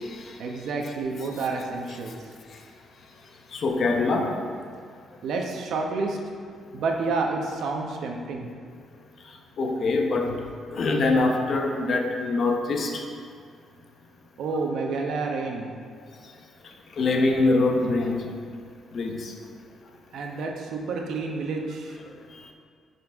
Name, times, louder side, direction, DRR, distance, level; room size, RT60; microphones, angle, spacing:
voice 1, 0.4-2.3 5.2-6.2 6.7-8.5 14.4-15.7 20.1-22.0, right 3 dB, 75° right, 1 dB, 1.0 m, -29 dB
voice 2, 3.6-4.3 9.6-10.3 10.7-12.9 17.0-18.2 18.9-19.1, left 3 dB, 55° left, 3 dB, 1.0 m, -23 dB
10.5 x 4.4 x 3.6 m, 2.1 s
cardioid pair, 90°, 0 cm